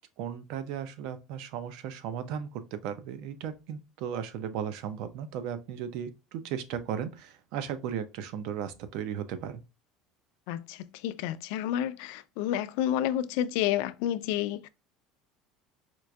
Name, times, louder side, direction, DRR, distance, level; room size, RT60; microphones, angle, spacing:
voice 1, 0.2-9.6, right 8 dB, 65° right, 0.6 m, -36 dB
voice 2, 10.5-14.7, left 11 dB, 75° left, 0.3 m, -30 dB
4.5 x 2.5 x 2.3 m
cardioid pair, 155°, 0 cm